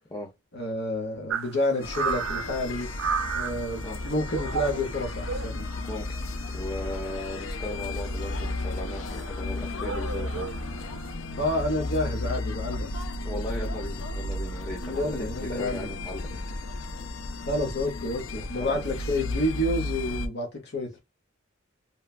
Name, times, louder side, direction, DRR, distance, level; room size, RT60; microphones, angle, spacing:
voice 1, 0.5-2.9 3.3-5.7 11.4-12.9 14.8-15.9 17.5-21.0, left 1 dB, 60° left, 0.9 m, -29 dB
sound 1, 1.3-11.1, right 6 dB, 75° right, 0.4 m, -35 dB
sound 2, 1.8-20.3, left 2 dB, 80° left, 0.5 m, -34 dB
voice 2, 6.5-10.5 13.2-16.5 18.4-18.8, left 1 dB, 20° left, 0.6 m, -37 dB
3.0 x 2.2 x 2.3 m
head